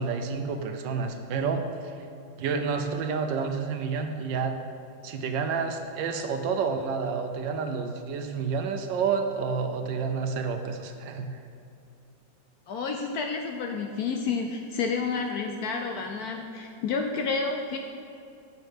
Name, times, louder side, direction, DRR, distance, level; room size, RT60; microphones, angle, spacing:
voice 1, 0.0-1.9 2.4-4.5 5.0-11.4, right 5 dB, 80° right, 5 dB, 1.3 m, -29 dB
voice 2, 12.7-17.8, left 4 dB, 75° left, 3 dB, 0.9 m, -30 dB
6.7 x 6.6 x 4.5 m, 2.6 s
omnidirectional pair, 2.0 m